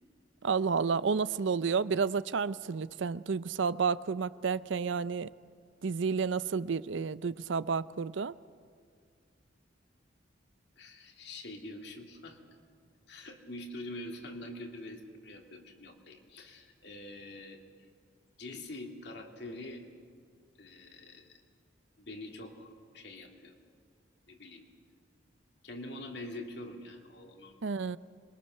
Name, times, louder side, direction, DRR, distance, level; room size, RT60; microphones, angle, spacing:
voice 1, 0.4-5.3 5.8-8.4 27.6-28.0, right 5 dB, 75° right, 0.5 m, -31 dB
voice 2, 10.8-12.4 13.1-17.6 18.4-19.9 20.6-21.4 22.0-23.5 24.3-24.7 25.6-27.6, left 1 dB, 60° left, 2.7 m, -45 dB
26.0 x 22.5 x 6.6 m
head